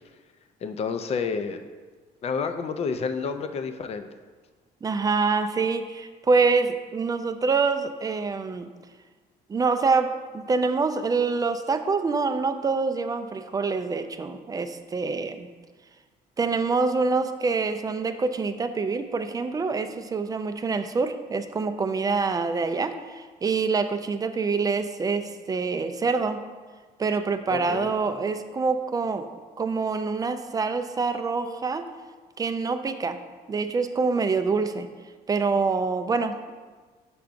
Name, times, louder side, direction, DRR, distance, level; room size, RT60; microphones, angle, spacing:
voice 1, 0.6-1.6 2.2-4.1 27.5-27.9, left 5 dB, 40° left, 8 dB, 0.5 m, -29 dB
voice 2, 4.8-8.7 9.5-15.5 16.4-26.4 27.0-31.9 32.4-33.2 33.5-34.9 35.3-36.5, right 4 dB, 20° right, 9 dB, 0.4 m, -26 dB
6.7 x 5.7 x 2.5 m, 1.4 s
cardioid pair, 110°, 17 cm